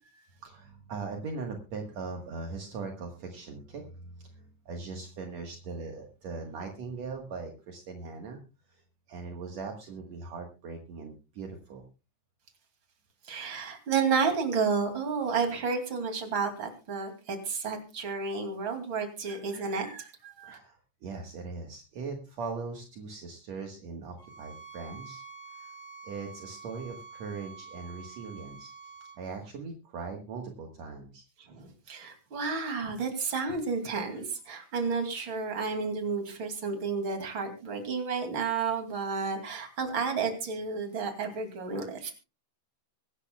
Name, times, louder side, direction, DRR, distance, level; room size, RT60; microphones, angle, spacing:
voice 1, 0.4-8.4 8.7-8.8 9.1-11.8 20.4-25.2 25.6-25.7 26.0-31.2, right 4 dB, 65° right, 2 dB, 2.6 m, -40 dB
voice 2, 13.3-20.6 31.5-42.1, right 5 dB, 40° right, 5 dB, 3.2 m, -31 dB
sound 1, 24.2-29.2, right 5 dB, 70° left, 2.8 m, -47 dB
24.5 x 12.0 x 2.3 m, 0.31 s
omnidirectional pair, 3.5 m